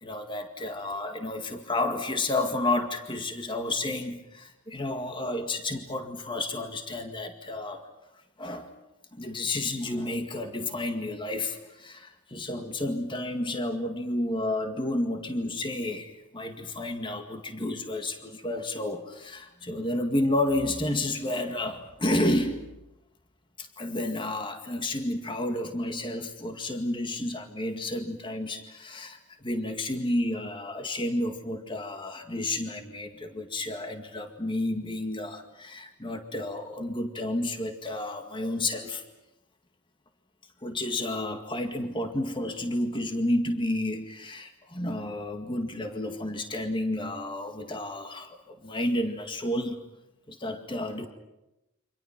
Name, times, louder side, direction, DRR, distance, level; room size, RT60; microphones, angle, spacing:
voice 1, 0.0-7.9 8.4-8.7 9.1-22.7 23.6-29.2 29.4-39.0 40.6-49.8 50.3-51.1, left 1 dB, 25° left, 6 dB, 2.0 m, -31 dB
28.5 x 25.5 x 6.0 m, 0.95 s
head